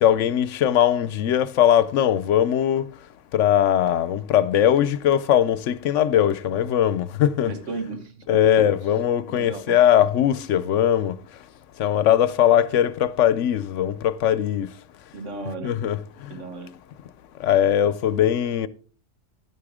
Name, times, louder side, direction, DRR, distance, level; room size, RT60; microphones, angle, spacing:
voice 1, 0.0-2.9 3.3-7.5 8.3-11.2 11.8-14.7 15.6-16.0 17.4-18.7, left 10 dB, 80° left, 1.0 m, -20 dB
voice 2, 7.5-8.7 9.3-9.8 15.1-15.8 16.3-16.8, right 3 dB, 75° right, 1.6 m, -35 dB
11.5 x 9.8 x 3.6 m
omnidirectional pair, 1.3 m